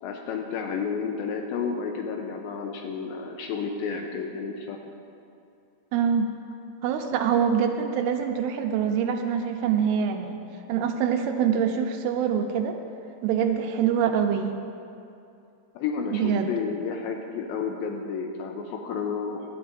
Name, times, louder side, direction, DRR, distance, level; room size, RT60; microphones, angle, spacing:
voice 1, 0.0-4.8 15.8-19.4, left 5 dB, 80° left, 2 dB, 2.3 m, -31 dB
voice 2, 5.9-6.3 6.8-10.4 10.7-12.8 13.2-14.5 16.1-16.5, right 7 dB, 80° right, 5 dB, 2.6 m, -24 dB
16.5 x 12.5 x 2.6 m, 2.6 s
omnidirectional pair, 4.7 m